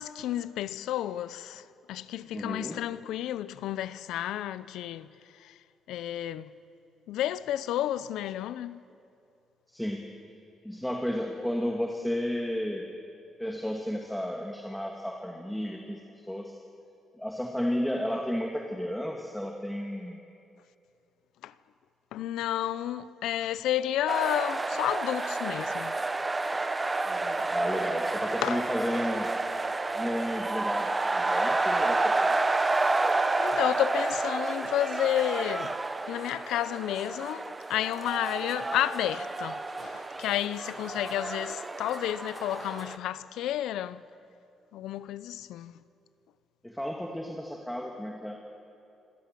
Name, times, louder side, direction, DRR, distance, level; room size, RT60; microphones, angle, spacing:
voice 1, 0.0-5.1 5.3-5.6 5.9-6.5 7.1-8.9 21.4-21.5 22.1-26.2 26.5-26.7 27.4-27.5 28.4-28.6 33.0-35.8 36.1-44.1 44.7-45.8, left 12 dB, 85° left, 0.6 m, -31 dB
voice 2, 2.3-2.8 9.7-10.1 10.6-12.9 13.4-16.6 17.2-20.2 27.1-29.3 29.9-32.5 46.6-48.4, equal, 5° left, 1.9 m, -33 dB
sound 1, 24.1-43.0, right 2 dB, 20° right, 1.0 m, -30 dB
26.0 x 16.5 x 7.6 m
cardioid pair, 90°, 0 cm